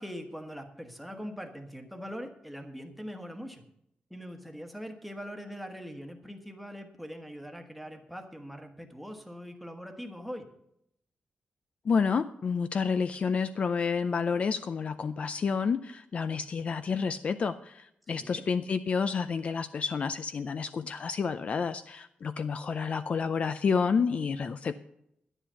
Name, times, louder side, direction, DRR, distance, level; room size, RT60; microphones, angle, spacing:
voice 1, 0.0-3.6 4.1-10.5 18.1-18.5, equal, ahead, 6 dB, 1.2 m, -42 dB
voice 2, 11.9-24.7, left 5 dB, 40° left, 12 dB, 0.4 m, -29 dB
11.5 x 10.0 x 5.7 m, 0.75 s
wide cardioid pair, 180°, 3 cm